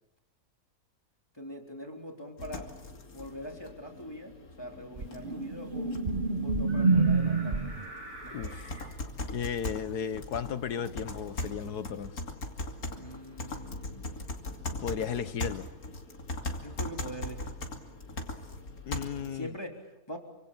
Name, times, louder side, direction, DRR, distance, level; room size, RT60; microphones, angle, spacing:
voice 1, 1.3-2.7 3.1-6.0 6.3-7.6 8.2-8.6 12.9-14.3 16.6-17.5 19.3-20.2, equal, 15° left, 3.5 m, -43 dB
sound 1, 2.4-19.4, left 2 dB, 65° left, 3.1 m, -40 dB
sound 2, 5.0-7.9 10.7-10.9, right 3 dB, 35° right, 1.2 m, -27 dB
sound 3, 6.7-8.9, right 1 dB, 75° right, 6.5 m, -46 dB
voice 2, 8.3-8.8 9.3-12.2 14.8-15.7 18.9-19.5, left 8 dB, 90° left, 1.8 m, -35 dB
28.5 x 25.5 x 7.4 m
omnidirectional pair, 1.6 m